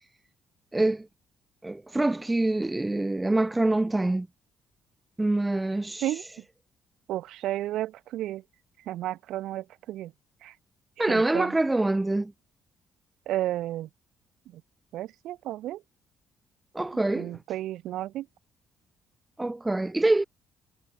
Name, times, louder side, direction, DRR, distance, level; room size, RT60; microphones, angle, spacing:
voice 1, 0.7-1.1 1.6-4.3 5.2-6.0 11.0-12.3 16.7-17.4 19.4-20.2, right 2 dB, 10° right, 2.8 m, -25 dB
voice 2, 6.0-6.4 7.1-8.4 8.8-10.1 10.4-10.5 11.1-11.6 13.3-13.9 14.5-14.6 14.9-15.8 17.2-18.3, right 14 dB, 75° right, 7.2 m, -32 dB
cardioid pair, 155°, 0 cm